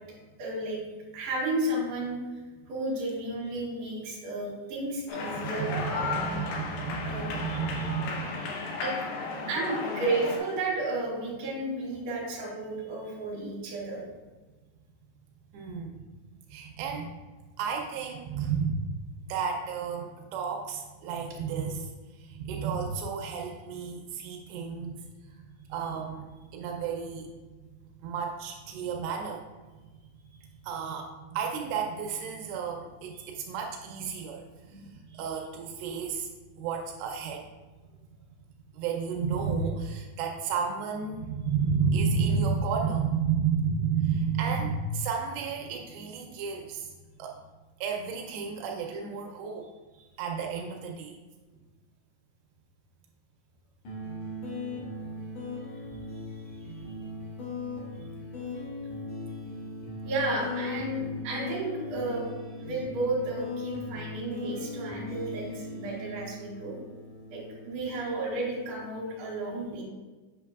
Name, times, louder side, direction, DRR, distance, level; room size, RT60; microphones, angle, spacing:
voice 1, 0.4-0.8 1.1-2.2 2.7-6.4 7.0-7.9 8.8-8.9 9.5-14.0 34.6-34.8 35.1-35.2 60.0-66.8 67.3-69.8, right 2 dB, 60° right, -4 dB, 3.4 m, -33 dB
sound 1, 5.1-10.4, left 4 dB, 75° left, 2.3 m, -34 dB
voice 2, 5.6-8.3 8.6-8.8 15.5-16.1 16.5-17.1 17.6-19.0 19.3-25.4 25.7-27.4 28.0-29.4 30.6-37.5 38.7-46.9 47.2-47.4 47.8-49.7 50.2-51.2, right 6 dB, 90° right, 1 dB, 2.8 m, -32 dB
sound 2, 53.8-68.9, left 2 dB, 55° left, 2.2 m, -39 dB
8.3 x 5.7 x 2.3 m, 1.3 s
omnidirectional pair, 4.8 m